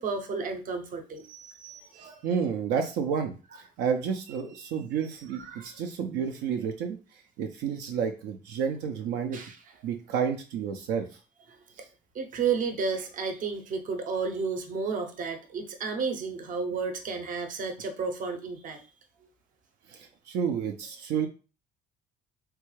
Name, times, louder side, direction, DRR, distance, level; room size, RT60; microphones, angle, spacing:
voice 1, 0.0-2.2 4.6-4.7 5.3-5.8 9.3-9.6 11.5-11.6 12.1-18.8, right 5 dB, 50° right, 4 dB, 0.7 m, -32 dB
voice 2, 2.0-7.0 7.4-9.4 9.8-11.1 19.9-21.3, right 7 dB, 85° right, 4 dB, 0.5 m, -30 dB
3.3 x 2.3 x 3.1 m, 0.34 s
cardioid pair, 110°, 17 cm